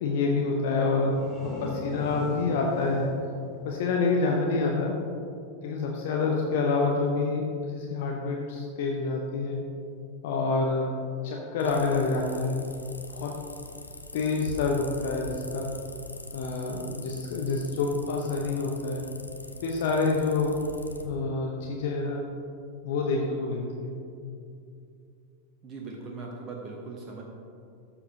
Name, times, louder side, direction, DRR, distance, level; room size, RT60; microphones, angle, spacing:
voice 1, 0.0-3.1 3.6-5.0 5.6-9.6 10.2-10.9 11.2-12.6 13.1-13.4 14.1-15.7 16.3-19.0 19.6-20.6 21.0-22.3 22.8-23.9, left 3 dB, 55° left, 0 dB, 0.9 m, -27 dB
sound 1, 0.9-4.5, left 1 dB, 5° left, 2.1 m, -41 dB
sound 2, 11.6-21.0, left 2 dB, 85° left, 0.7 m, -42 dB
voice 2, 25.6-27.2, right 3 dB, 30° right, -1 dB, 1.0 m, -39 dB
13.0 x 7.1 x 2.8 m, 2.5 s
figure-of-eight pair, 90°, 0 cm